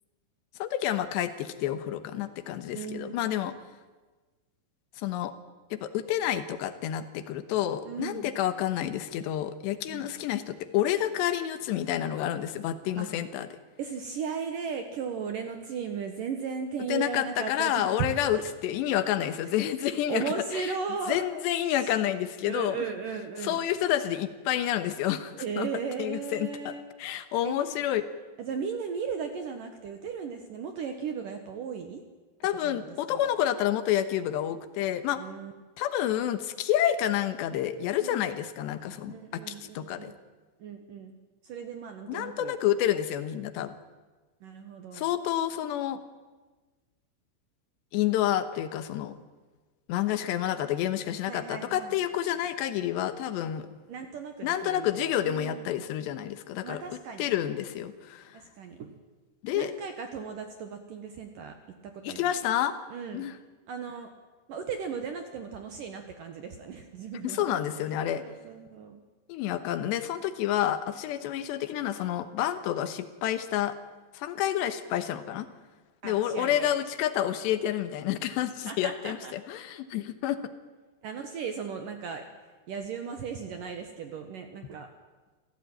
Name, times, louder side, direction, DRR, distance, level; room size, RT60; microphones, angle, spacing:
voice 1, 0.6-3.5 5.0-5.3 5.7-13.5 16.9-20.2 20.5-20.7 21.1-22.8 23.4-25.7 26.0-26.7 27.0-28.1 32.4-35.2 35.8-40.1 42.1-43.8 44.9-46.0 47.9-49.1 49.9-53.7 54.4-56.8 57.2-58.4 59.4-59.7 62.0-62.7 63.1-63.3 67.2-68.2 69.3-73.7 74.1-75.5 76.0-80.4, left 11 dB, 75° left, 11 dB, 3.1 m, -29 dB
voice 2, 2.7-3.3 7.8-8.3 9.9-10.1 13.0-13.1 13.8-18.1 18.3-18.4 19.8-21.2 21.7-21.9 22.4-23.6 25.3-26.8 27.4-27.5 28.4-32.0 32.6-33.3 35.2-35.5 38.0-38.2 39.1-40.2 40.6-41.2 41.4-42.6 44.4-45.1 51.3-51.9 53.9-55.7 56.6-57.3 58.3-58.9 59.5-61.6 61.8-62.3 62.9-63.3 63.7-64.1 64.5-67.6 68.2-69.0 76.0-76.8 78.7-79.3 81.0-82.2 82.7-84.9, right 6 dB, 65° right, 6 dB, 2.2 m, -36 dB
27.0 x 16.0 x 9.1 m, 1.3 s
omnidirectional pair, 5.6 m